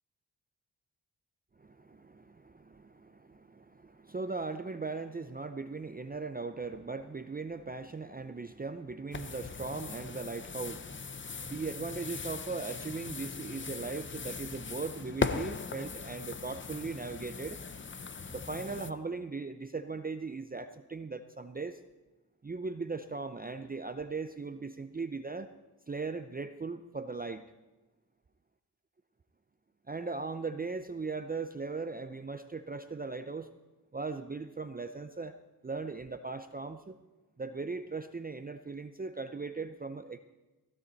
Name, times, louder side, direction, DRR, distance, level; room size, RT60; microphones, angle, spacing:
voice 1, 1.6-11.0 11.4-17.6 18.3-21.8 22.4-25.5 25.9-27.5 29.9-33.5 33.9-35.3 35.6-37.0 37.4-40.2, right 4 dB, 20° right, 8 dB, 0.6 m, -38 dB
sound 1, 9.1-18.9, left 5 dB, 30° left, 0.6 m, -39 dB
16.0 x 15.5 x 4.1 m, 1.1 s
wide cardioid pair, 105°, 41 cm